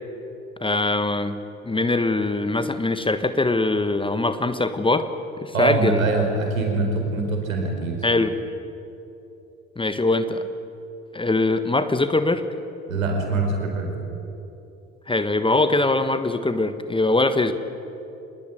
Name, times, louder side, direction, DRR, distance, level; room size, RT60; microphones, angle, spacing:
voice 1, 0.6-1.4 1.6-5.1 5.4-6.1 8.0-8.4 9.8-10.5 11.1-12.4 15.1-17.5, left 2 dB, 10° left, 10 dB, 1.4 m, -22 dB
voice 2, 5.5-7.9 12.9-13.9, right 3 dB, 75° right, 3 dB, 4.6 m, -23 dB
26.0 x 20.5 x 9.2 m, 2.9 s
figure-of-eight pair, 55°, 40 cm